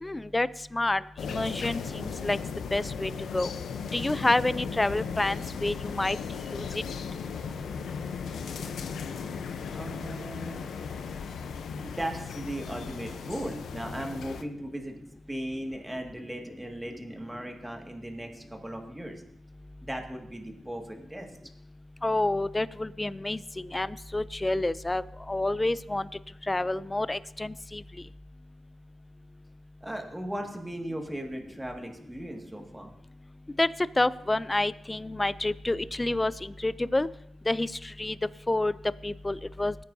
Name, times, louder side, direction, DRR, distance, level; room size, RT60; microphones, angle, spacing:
voice 1, 0.0-2.4 2.7-3.5 3.9-6.2 6.5-6.7 22.0-26.1 26.5-27.8 33.6-33.7 34.0-37.1 37.5-38.2 38.5-38.7 39.0-39.7, left 2 dB, 20° left, 17 dB, 0.4 m, -28 dB
sound 1, 1.2-14.4, left 6 dB, 85° left, 0.7 m, -36 dB
voice 2, 9.7-10.7 11.8-14.9 15.3-19.2 19.8-21.3 29.8-32.9, right 1 dB, 10° right, 2 dB, 1.9 m, -37 dB
19.0 x 9.3 x 2.7 m, 0.77 s
cardioid pair, 75°, 0 cm